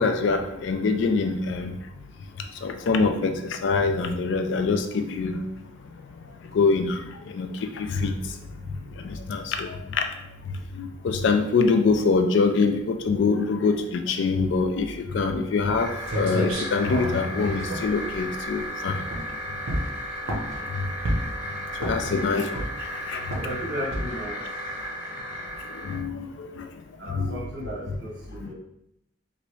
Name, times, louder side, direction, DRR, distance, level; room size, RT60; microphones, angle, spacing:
voice 1, 0.0-1.7 2.6-5.4 6.5-7.5 7.8-8.1 9.0-10.0 10.8-19.0 20.3-20.4 21.8-22.6 23.1-23.2 25.8-26.6 27.1-27.4, left 4 dB, 60° left, 6 dB, 0.3 m, -24 dB
sound 1, 15.8-26.0, equal, 45° left, 0.8 m, -35 dB
sound 2, 15.8-15.9 16.1-18.7 19.1-19.3 19.7-20.6 21.0-21.4 21.8-22.2 22.5-22.9 23.3-23.5 23.9-24.2, right 1 dB, 75° right, 0.6 m, -30 dB
voice 2, 22.0-22.4 23.3-24.4 27.0-28.5, equal, 55° right, -4 dB, 0.9 m, -35 dB
2.9 x 2.6 x 3.0 m, 0.79 s
head